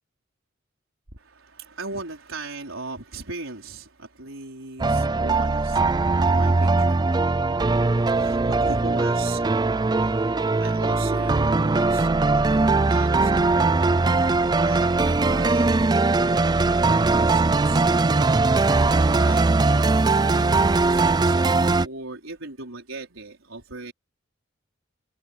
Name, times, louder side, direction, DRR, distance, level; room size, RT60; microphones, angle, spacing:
voice 1, 1.1-7.0 8.2-9.5 10.0-10.2 10.6-13.7 14.6-17.9 18.7-19.5 20.1-23.9, right 3 dB, 90° right, 4.5 m, -38 dB
sound 1, 4.8-21.9, right 3 dB, 20° right, 0.4 m, -20 dB
head